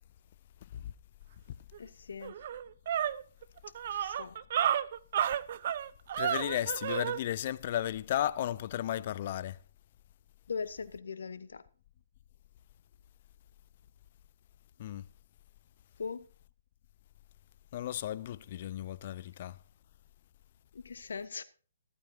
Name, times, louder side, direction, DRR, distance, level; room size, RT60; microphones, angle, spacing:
sound 1, 1.7-1.8 2.2-7.2, right 9 dB, 45° right, 0.8 m, -32 dB
voice 1, 1.8-2.4 3.9-4.3 10.5-11.6 16.0-16.3 20.7-21.4, left 5 dB, 65° left, 1.1 m, -40 dB
voice 2, 6.2-9.6 14.8-15.0 17.7-19.6, left 12 dB, 40° left, 0.6 m, -34 dB
15.0 x 14.0 x 2.8 m
figure-of-eight pair, 130°, 0 cm